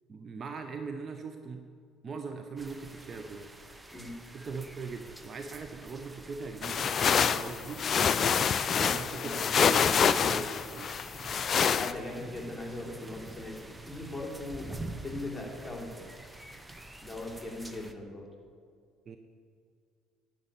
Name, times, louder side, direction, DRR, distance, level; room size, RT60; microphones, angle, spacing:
voice 1, 0.1-1.7 2.0-3.5 4.3-6.9 7.3-7.9 8.8-11.0 19.1-19.2, right 4 dB, 40° right, 6 dB, 0.7 m, -40 dB
sound 1, 2.6-17.9, right 2 dB, 10° right, 0.9 m, -47 dB
sound 2, 6.6-11.9, left 7 dB, 45° left, 0.4 m, -26 dB
voice 2, 8.7-9.5 11.7-16.1 17.0-18.3, left 2 dB, 5° left, -3 dB, 3.5 m, -40 dB
10.5 x 6.5 x 9.0 m, 2.2 s
hypercardioid pair, 55°, 0 cm